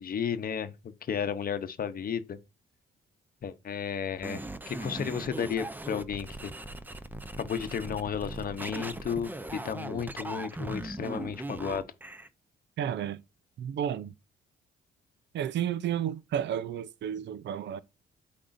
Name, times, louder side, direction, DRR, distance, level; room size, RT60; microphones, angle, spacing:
voice 1, 0.0-2.4 3.4-4.4 4.7-6.5 7.4-11.8, left 7 dB, 50° left, 0.8 m, -33 dB
sound 1, 4.2-12.3, right 1 dB, 10° right, 0.7 m, -39 dB
voice 2, 12.8-13.2 13.6-14.1 15.3-17.8, right 9 dB, 65° right, 0.6 m, -32 dB
8.6 x 5.3 x 2.6 m
cardioid pair, 90°, 20 cm